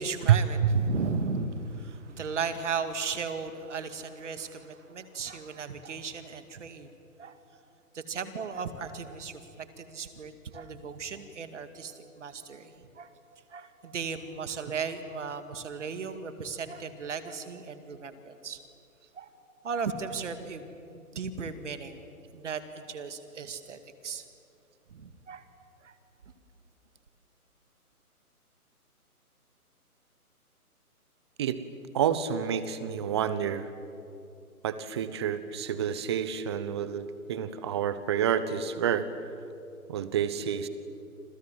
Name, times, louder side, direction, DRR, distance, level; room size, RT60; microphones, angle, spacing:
voice 1, 0.0-6.9 7.2-7.4 7.9-13.1 13.5-18.6 19.1-19.3 19.6-22.0 22.3-22.6 22.9-24.2 24.9-25.5 25.8-25.9, right 5 dB, 50° right, 10 dB, 2.3 m, -36 dB
voice 2, 31.9-33.7 34.6-39.1 39.9-40.7, right 9 dB, 20° right, 14 dB, 0.9 m, -28 dB
28.0 x 27.5 x 7.6 m, 2.6 s
figure-of-eight pair, 145°, 45 cm